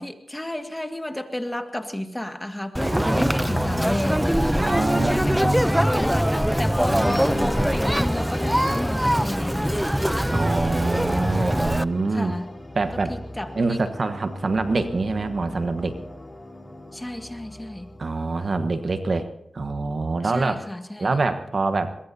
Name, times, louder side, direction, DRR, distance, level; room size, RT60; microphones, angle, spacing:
voice 1, 0.0-4.4 5.0-9.8 12.1-12.5 12.9-13.8 16.9-17.9 20.2-21.1, left 1 dB, 15° left, 6 dB, 1.9 m, -31 dB
Conversation, 2.7-11.8, equal, 5° right, 0.6 m, -22 dB
voice 2, 2.8-5.6 6.9-7.8 10.3-12.3 12.7-13.2 13.5-16.0 18.0-20.6 21.0-22.0, right 3 dB, 60° right, 8 dB, 1.3 m, -26 dB
sound 1, 7.0-19.1, left 1 dB, 35° left, 4.1 m, -39 dB
22.5 x 22.0 x 2.8 m, 0.78 s
cardioid pair, 50°, 0 cm